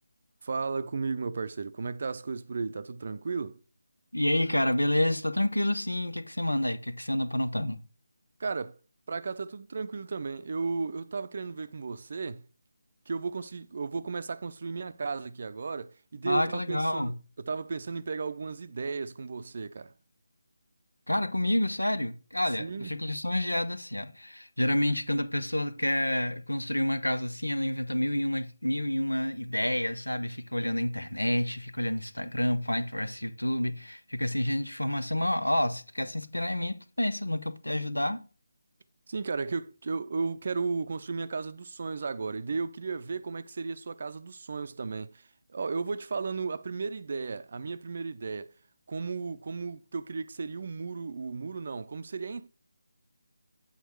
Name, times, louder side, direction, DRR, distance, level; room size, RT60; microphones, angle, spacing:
voice 1, 0.4-3.6 8.4-8.7 9.1-12.4 13.1-19.9 22.6-22.9 39.1-45.2 45.5-48.5 48.9-52.5, right 4 dB, 45° right, 0.5 m, -34 dB
voice 2, 4.1-7.8 16.2-17.1 21.1-38.3, left 1 dB, 90° left, 0.8 m, -29 dB
8.2 x 3.9 x 4.6 m
figure-of-eight pair, 155°, 0 cm